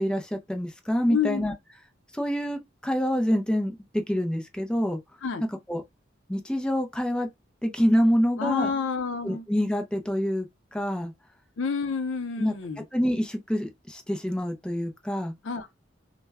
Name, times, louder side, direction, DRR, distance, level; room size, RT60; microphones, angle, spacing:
voice 1, 0.0-1.5 2.1-5.0 5.7-5.8 6.3-7.3 7.6-8.7 9.2-10.5 10.7-11.1 12.4-12.5 12.9-15.3, equal, 5° left, 0.4 m, -26 dB
voice 2, 1.1-1.5 5.2-5.4 8.4-9.4 11.6-12.8 15.4-15.7, left 5 dB, 85° left, 0.5 m, -29 dB
2.1 x 2.1 x 3.4 m
head